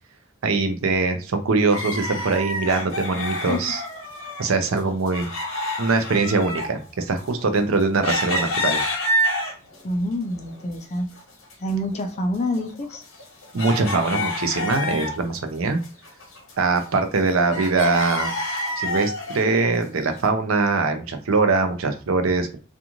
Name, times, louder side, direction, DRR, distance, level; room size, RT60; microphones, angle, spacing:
voice 1, 0.4-3.8 4.4-5.3 5.8-8.8 13.5-15.8 16.6-18.3 18.8-22.6, right 3 dB, 75° right, 7 dB, 0.5 m, -22 dB
sound 1, 1.7-4.5 4.7-9.8 10.3-11.2 11.4-11.5 12.1-15.4 15.7-17.2 17.5-19.5 20.1-20.2, left 1 dB, 70° left, 1.1 m, -28 dB
voice 2, 9.8-11.1 11.6-13.0, left 1 dB, 30° left, 5 dB, 0.4 m, -27 dB
2.5 x 2.4 x 2.9 m, 0.34 s
head